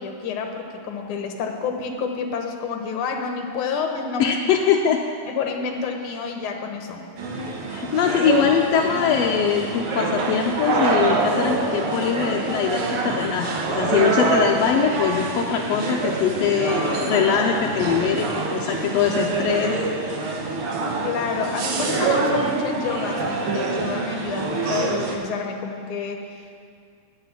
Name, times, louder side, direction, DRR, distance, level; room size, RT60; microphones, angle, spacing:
voice 1, 0.0-4.4 5.3-7.0 21.0-26.6, left 5 dB, 60° left, 3 dB, 1.5 m, -29 dB
voice 2, 4.2-5.0 7.7-20.2, left 7 dB, 80° left, 1 dB, 1.5 m, -22 dB
sound 1, 7.2-25.2, right 3 dB, 60° right, 1.6 m, -25 dB
9.7 x 9.3 x 7.3 m, 2.2 s
omnidirectional pair, 3.6 m